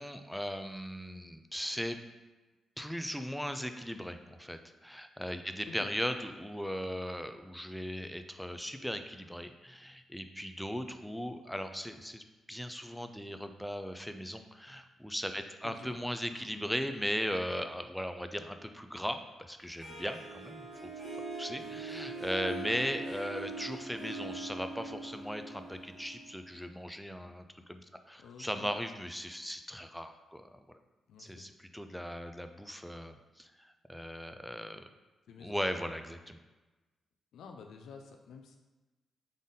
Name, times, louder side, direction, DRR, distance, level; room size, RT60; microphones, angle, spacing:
voice 1, 0.0-2.0 2.8-20.9 21.4-30.8 31.2-34.8 35.4-36.4, equal, ahead, 7 dB, 0.3 m, -38 dB
voice 2, 15.6-16.0 16.3-16.4 21.6-21.8 28.2-28.7 31.1-31.5 35.3-35.6 37.3-38.6, left 5 dB, 85° left, 3 dB, 0.4 m, -50 dB
Harp, 19.8-26.7, right 2 dB, 50° right, 1.3 m, -42 dB
3.9 x 3.7 x 3.6 m, 1.2 s
cardioid pair, 125°, 0 cm